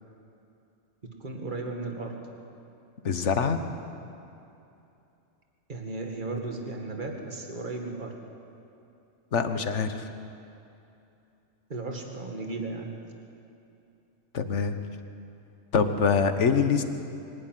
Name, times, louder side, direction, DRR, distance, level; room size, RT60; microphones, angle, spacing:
voice 1, 1.2-2.2 5.7-8.1 11.7-12.9, right 3 dB, 45° right, 2 dB, 2.2 m, -35 dB
voice 2, 3.0-3.6 9.3-10.1 14.3-14.8 15.7-16.8, left 5 dB, 80° left, 8 dB, 1.5 m, -24 dB
24.0 x 11.5 x 9.3 m, 2.8 s
omnidirectional pair, 1.2 m